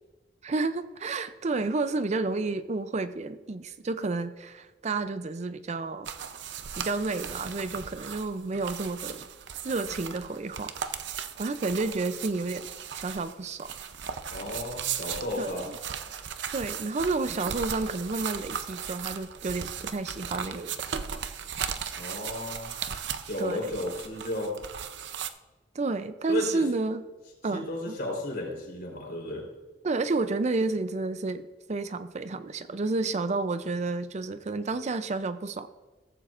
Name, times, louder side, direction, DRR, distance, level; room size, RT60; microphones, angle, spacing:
voice 1, 0.4-6.1 6.8-9.3 9.6-10.7 11.4-12.7 12.9-13.7 15.4-15.8 16.5-20.8 23.4-23.7 25.7-27.1 27.4-28.0 29.8-35.7, right 3 dB, 40° right, 12 dB, 0.5 m, -30 dB
sound 1, 6.0-25.3, right 7 dB, 85° right, 0.6 m, -37 dB
voice 2, 14.3-15.7 21.9-22.7 23.2-24.5 26.3-26.6 27.5-29.5, left 1 dB, 60° left, 0 dB, 3.8 m, -33 dB
14.5 x 14.5 x 2.5 m, 1.2 s
head